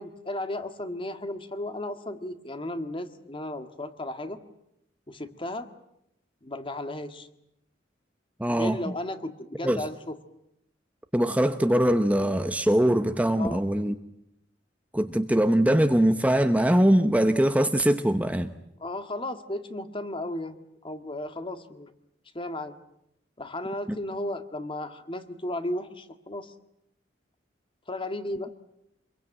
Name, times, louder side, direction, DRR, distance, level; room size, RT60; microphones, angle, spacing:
voice 1, 0.0-4.4 5.1-5.7 6.4-7.3 8.5-10.2 13.4-13.6 18.8-20.6 20.8-21.9 22.3-22.7 23.4-26.5 27.9-28.5, left 1 dB, 30° left, 9 dB, 1.8 m, -34 dB
voice 2, 8.4-8.9 9.6-9.8 11.1-13.9 14.9-18.5, right 1 dB, 10° right, 8 dB, 0.9 m, -22 dB
26.5 x 22.5 x 9.1 m, 0.79 s
head